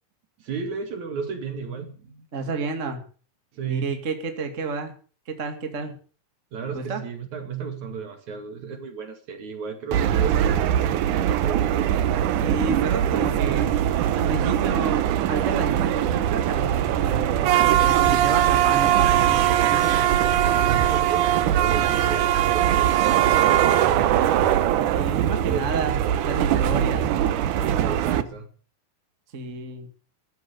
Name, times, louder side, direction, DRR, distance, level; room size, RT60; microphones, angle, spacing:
voice 1, 0.4-2.3 3.5-4.0 6.5-11.9 20.5-26.4 27.7-28.5, right 6 dB, 55° right, 3.3 m, -34 dB
voice 2, 2.3-3.0 3.7-4.9 5.2-5.9 6.7-7.0 12.3-13.8 14.1-20.1 24.9-26.0 26.2-27.1 27.5-28.2 29.3-29.9, right 4 dB, 25° right, 1.8 m, -31 dB
sound 1, 9.9-28.2, right 11 dB, 70° right, 2.1 m, -21 dB
14.5 x 12.0 x 6.8 m
omnidirectional pair, 4.3 m